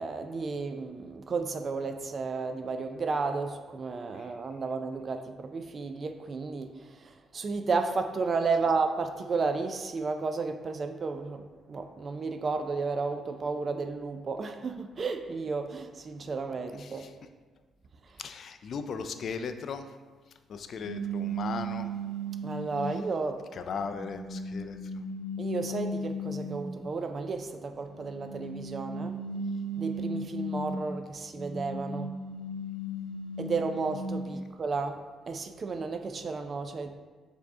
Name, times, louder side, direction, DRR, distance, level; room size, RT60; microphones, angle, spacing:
voice 1, 0.0-17.1 22.4-23.4 25.4-29.2 29.8-32.1 33.4-35.0 35.3-37.0, right 4 dB, 45° right, 7 dB, 0.3 m, -32 dB
voice 2, 16.8-17.1 18.2-19.9 20.5-21.9 23.5-25.0 34.3-34.4, left 5 dB, 60° left, 8 dB, 0.3 m, -37 dB
sound 1, 20.8-23.0 23.7-26.8 27.9-30.9 31.3-34.3, right 1 dB, 85° left, 0.7 m, -36 dB
4.6 x 2.7 x 3.6 m, 1.4 s
cardioid pair, 90°, 0 cm